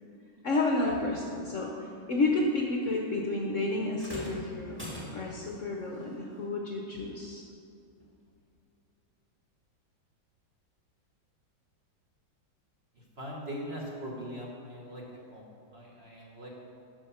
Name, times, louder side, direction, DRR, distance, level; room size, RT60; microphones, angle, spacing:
voice 1, 0.4-7.4, left 2 dB, 55° left, 0 dB, 1.0 m, -31 dB
sound 1, 4.0-5.5 7.0-7.1 8.0-8.1, equal, 5° right, 1.7 m, -42 dB
voice 2, 13.2-15.0 15.3-15.4 15.7-16.5, equal, 35° right, -3 dB, 1.4 m, -40 dB
13.0 x 5.3 x 5.7 m, 2.5 s
omnidirectional pair, 2.0 m